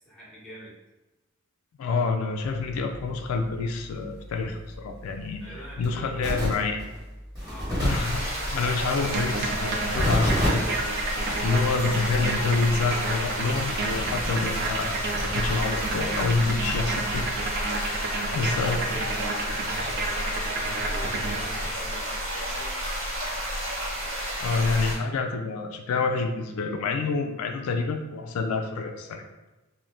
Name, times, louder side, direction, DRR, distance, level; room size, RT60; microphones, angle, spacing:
voice 1, 0.0-0.7 5.4-6.2 6.6-6.9 7.4-7.8 17.9-22.7, equal, 5° left, -9 dB, 0.9 m, -44 dB
voice 2, 1.8-6.8 7.8-8.3 8.5-10.7 11.0-11.2 11.4-17.3 18.3-18.9 24.4-29.2, left 4 dB, 85° left, 9 dB, 0.3 m, -27 dB
sound 1, 2.4-17.7, equal, 20° right, 1.2 m, -34 dB
sound 2, 7.8-24.9, equal, 70° right, 1.0 m, -31 dB
sound 3, 9.0-21.8, right 3 dB, 50° right, 0.3 m, -31 dB
2.5 x 2.1 x 3.2 m, 1.1 s
head